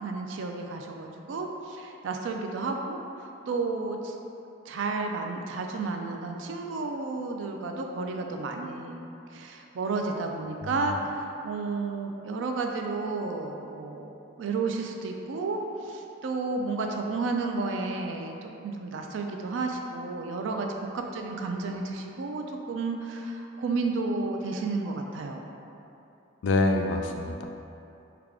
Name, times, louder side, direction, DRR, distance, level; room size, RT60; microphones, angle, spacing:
voice 1, 0.0-4.1 4.7-9.0 9.3-15.6 15.9-25.5, right 3 dB, 75° right, 3 dB, 0.3 m, -32 dB
voice 2, 10.6-10.9 26.4-27.5, left 2 dB, 70° left, 3 dB, 0.3 m, -26 dB
3.5 x 2.3 x 3.5 m, 2.8 s
head